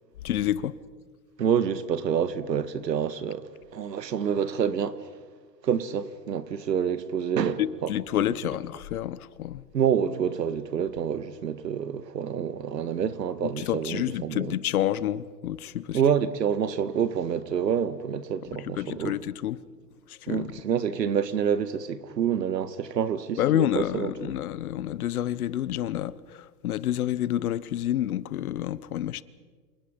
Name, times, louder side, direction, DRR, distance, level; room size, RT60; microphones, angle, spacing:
voice 1, 0.2-0.8 7.6-9.6 13.4-16.0 18.6-19.6 20.1-20.5 23.4-29.2, left 12 dB, 60° left, 1.2 m, -29 dB
voice 2, 1.4-5.1 5.6-7.9 9.7-14.6 15.9-19.2 20.3-24.1, right 8 dB, 90° right, 1.8 m, -27 dB
28.5 x 28.0 x 5.3 m
hypercardioid pair, 145°, 48 cm